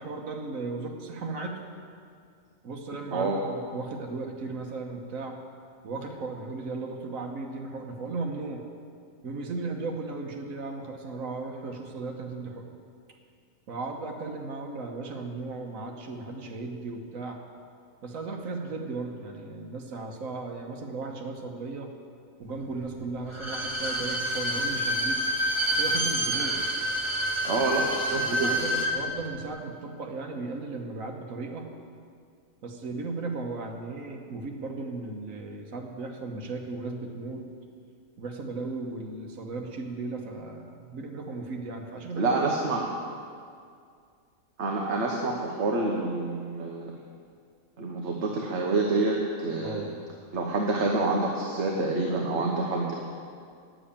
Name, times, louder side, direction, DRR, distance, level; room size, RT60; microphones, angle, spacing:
voice 1, 0.0-1.6 2.6-5.4 5.8-8.6 9.2-12.6 13.7-17.4 18.0-21.9 22.4-25.2 25.7-26.6 28.2-31.7 32.6-37.4 38.2-42.8 49.6-50.0, right 3 dB, 75° right, 1 dB, 1.5 m, -36 dB
Bowed string instrument, 23.3-28.9 29.3-29.4, right 1 dB, 20° right, 1.3 m, -28 dB
voice 2, 27.4-28.5 42.2-42.8 44.6-46.9 47.8-49.8 50.3-52.9, right 3 dB, 55° right, -1 dB, 1.3 m, -27 dB
10.0 x 7.7 x 8.5 m, 2.3 s
omnidirectional pair, 1.5 m